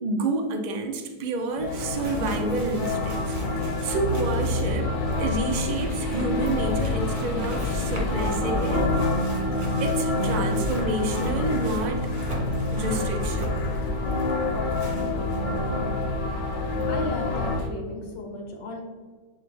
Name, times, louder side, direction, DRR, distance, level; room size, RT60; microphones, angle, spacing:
voice 1, 0.0-8.9 9.8-12.1 12.7-13.6, right 2 dB, 65° right, 4 dB, 0.4 m, -29 dB
sound 1, 1.2-1.3 1.5-15.6 16.0-16.1 16.8-16.9, right 2 dB, 30° right, 1.5 m, -39 dB
sound 2, 1.6-17.6, left 2 dB, 90° left, 1.8 m, -28 dB
sound 3, 1.9-17.7, left 1 dB, 50° left, 1.1 m, -32 dB
voice 2, 16.9-18.8, left 2 dB, 75° left, 1 dB, 2.0 m, -35 dB
10.5 x 3.5 x 3.4 m, 1.4 s
omnidirectional pair, 1.9 m